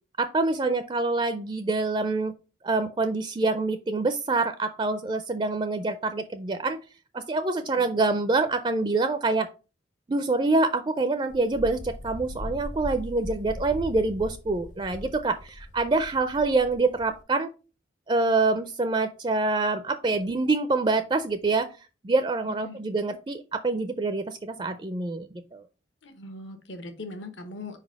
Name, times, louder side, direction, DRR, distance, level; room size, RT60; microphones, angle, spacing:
voice 1, 0.2-2.3 2.6-6.8 7.1-9.5 10.1-17.5 18.1-25.3 25.5-25.6, right 3 dB, 25° right, 9 dB, 0.4 m, -26 dB
Wind, 11.3-17.2, equal, 40° left, 0.7 m, -39 dB
voice 2, 26.0-27.8, left 2 dB, 80° left, 8 dB, 1.2 m, -40 dB
5.0 x 4.1 x 5.1 m, 0.33 s
head